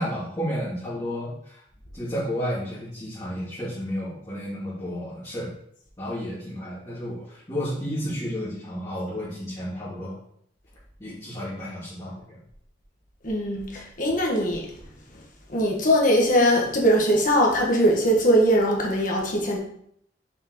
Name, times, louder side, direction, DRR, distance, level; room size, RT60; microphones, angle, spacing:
voice 1, 0.0-1.6 1.9-5.5 6.0-10.2 11.0-12.4, equal, 20° left, -13 dB, 2.7 m, -32 dB
voice 2, 13.2-14.6 15.5-19.6, equal, 50° left, -1 dB, 1.5 m, -21 dB
6.0 x 5.5 x 3.1 m, 0.67 s
head